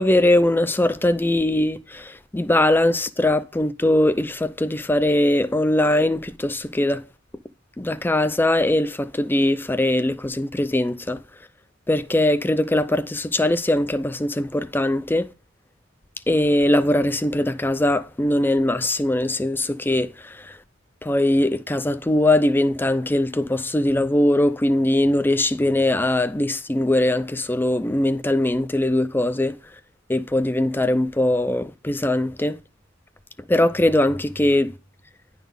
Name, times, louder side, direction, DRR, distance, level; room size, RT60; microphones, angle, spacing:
voice 1, 0.0-7.1 7.8-11.2 11.9-15.3 16.3-20.6 21.0-29.6 30.1-32.6 33.5-34.7, left 1 dB, 10° left, 0.4 m, -21 dB
10.5 x 4.0 x 5.3 m
head